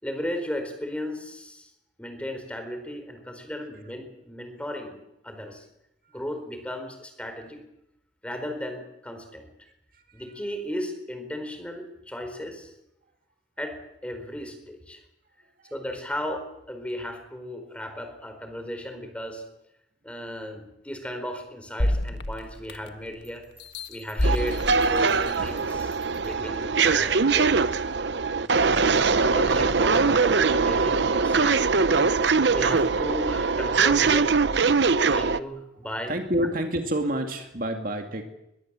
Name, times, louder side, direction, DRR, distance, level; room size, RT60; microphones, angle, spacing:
voice 1, 0.0-1.7 2.0-5.6 6.1-7.6 8.2-9.5 10.1-12.7 13.6-15.0 15.7-19.4 20.0-23.4 23.9-27.5 28.4-28.9 29.2-31.6 32.5-34.4 35.1-36.1, equal, 5° left, 6 dB, 4.4 m, -35 dB
voice 2, 9.9-10.3 15.6-15.7 35.8-38.2, right 1 dB, 50° right, 4 dB, 2.3 m, -29 dB
sound 1, 21.8-23.1 23.6-25.7 26.3-26.4, left 1 dB, 65° left, 1.6 m, -28 dB
Bell, 23.2-26.4, right 3 dB, 10° right, 7.4 m, -57 dB
sound 2, 24.2-35.4, right 4 dB, 65° right, 0.8 m, -22 dB
22.5 x 22.0 x 7.6 m, 0.84 s
head